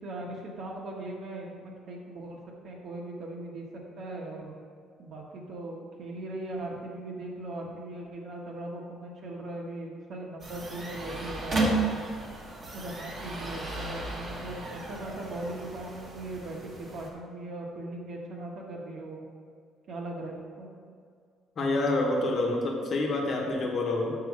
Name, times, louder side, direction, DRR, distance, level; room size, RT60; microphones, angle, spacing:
voice 1, 0.0-2.4 2.6-4.5 5.0-11.8 12.7-19.2 19.9-20.7, right 2 dB, 50° right, -1 dB, 1.4 m, -39 dB
sound 1, 10.4-17.1, right 2 dB, 30° right, 1.2 m, -34 dB
voice 2, 21.6-24.2, left 2 dB, 40° left, 0 dB, 1.2 m, -27 dB
6.9 x 5.9 x 4.8 m, 2.1 s
cardioid pair, 160°, 0 cm